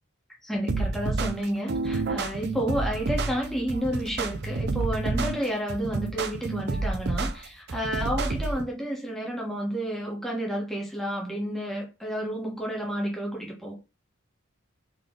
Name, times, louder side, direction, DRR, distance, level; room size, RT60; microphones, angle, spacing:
voice 1, 0.4-13.7, equal, ahead, 1.3 m, -31 dB
sound 1, 0.7-8.7, right 3 dB, 55° right, 0.5 m, -29 dB
3.9 x 3.3 x 3.8 m
head